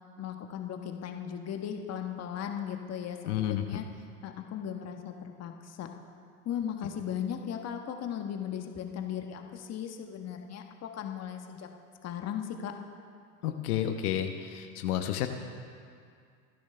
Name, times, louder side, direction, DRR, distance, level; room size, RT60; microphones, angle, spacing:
voice 1, 0.2-3.8 4.2-5.9 6.4-11.7 12.0-12.7, left 9 dB, 35° left, 4 dB, 1.3 m, -37 dB
voice 2, 3.3-3.6 13.4-15.3, left 11 dB, 70° left, 5 dB, 1.2 m, -30 dB
26.5 x 10.0 x 3.4 m, 2.3 s
hypercardioid pair, 95°, 47 cm